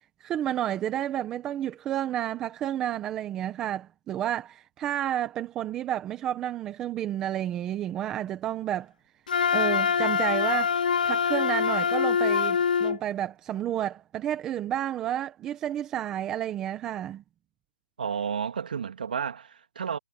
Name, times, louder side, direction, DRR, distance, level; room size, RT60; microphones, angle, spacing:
voice 1, 0.2-8.9 9.5-17.2, right 11 dB, 10° right, 1.0 m, -31 dB
Wind instrument woodwind instrument, 9.3-13.0, left 6 dB, 40° left, 0.4 m, -24 dB
voice 2, 18.0-20.0, right 7 dB, 45° right, 3.0 m, -31 dB
hypercardioid pair, 170°, 7 cm